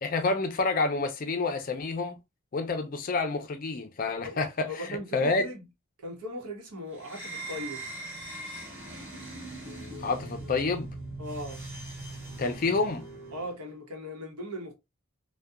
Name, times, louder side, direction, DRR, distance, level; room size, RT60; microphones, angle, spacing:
voice 1, 0.0-2.2 2.5-5.5 10.0-10.9 12.4-13.0, left 3 dB, 40° left, 0.4 m, -28 dB
voice 2, 4.7-5.6 6.0-7.8 11.2-11.6 13.3-14.7, left 1 dB, 90° right, 0.9 m, -38 dB
sound 1, 7.0-13.6, right 2 dB, 10° right, 0.7 m, -40 dB
2.7 x 2.2 x 2.3 m
head